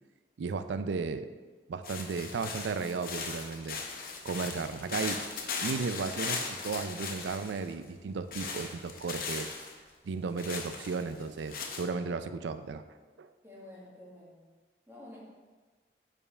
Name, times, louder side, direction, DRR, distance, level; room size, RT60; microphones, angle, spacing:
voice 1, 0.4-1.3 1.7-3.8 4.2-5.2 5.6-9.5 10.0-12.8 13.2-13.3, right 4 dB, 90° right, 11 dB, 0.4 m, -34 dB
sound 1, 1.8-7.7 8.3-9.7 10.4-11.8, left 4 dB, 50° left, 0.7 m, -38 dB
voice 2, 13.4-14.5 14.9-15.2, left 1 dB, 15° right, -6 dB, 1.5 m, -50 dB
5.1 x 4.8 x 4.8 m, 1.4 s
head